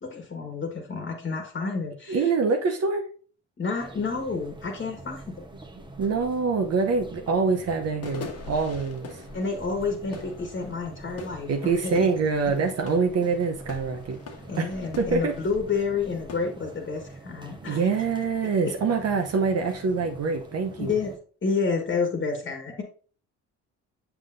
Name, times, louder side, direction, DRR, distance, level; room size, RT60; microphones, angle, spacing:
voice 1, 0.0-2.3 3.6-5.5 9.3-11.5 11.8-12.1 14.5-17.8 18.6-18.7 20.8-21.1 21.4-22.8, left 4 dB, 40° left, 1.4 m, -29 dB
voice 2, 2.1-3.1 6.0-9.2 11.5-14.2 14.6-15.4 17.6-20.9, right 4 dB, 55° right, 0.9 m, -25 dB
sound 1, 3.8-21.2, right 2 dB, 15° right, 0.9 m, -46 dB
sound 2, 4.6-4.7 5.1-16.6, left 4 dB, 55° left, 1.2 m, -44 dB
6.9 x 5.8 x 2.6 m
cardioid pair, 90°, 30 cm